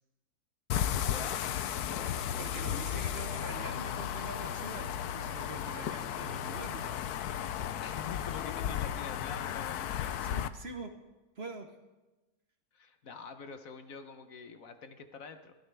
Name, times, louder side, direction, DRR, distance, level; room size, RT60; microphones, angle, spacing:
sound 1, 0.7-10.5, left 10 dB, 80° left, 1.2 m, -34 dB
voice 1, 1.0-1.5 1.7-2.2 2.7-3.1 7.8-10.1 12.7-15.5, left 5 dB, 65° left, 8 dB, 1.3 m, -46 dB
voice 2, 2.4-7.5 10.2-10.9 11.4-11.7, right 3 dB, 45° right, 6 dB, 1.2 m, -45 dB
22.0 x 15.5 x 3.4 m, 1.1 s
omnidirectional pair, 1.6 m